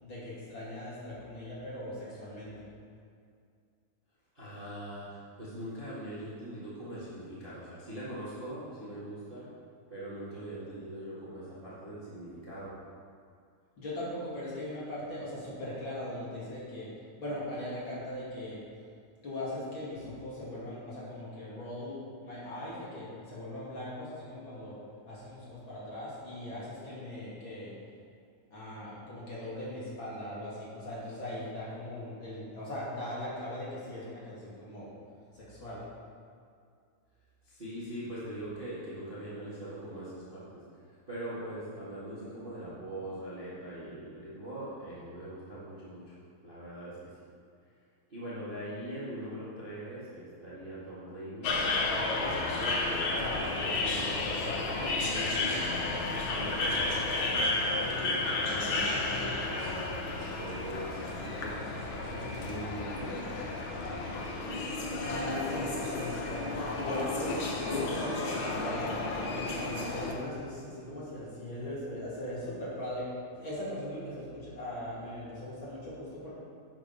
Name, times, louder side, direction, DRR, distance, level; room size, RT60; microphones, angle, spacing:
voice 1, 0.0-2.6 13.8-16.9 17.2-18.6 19.2-24.8 25.0-27.7 28.5-34.9 35.3-35.8 65.0-69.0 69.3-73.1 73.3-76.3, left 1 dB, 40° left, -9 dB, 3.1 m, -39 dB
voice 2, 4.3-9.5 9.9-12.7 37.4-40.4 41.1-46.1 46.4-47.0 48.1-51.6 52.1-55.7 56.3-57.4 57.7-59.8 60.2-63.2, right 1 dB, 20° right, -9 dB, 1.6 m, -42 dB
sound 1, 51.4-70.1, left 2 dB, 70° left, 1.2 m, -32 dB
10.5 x 6.6 x 5.6 m, 2.3 s
omnidirectional pair, 3.8 m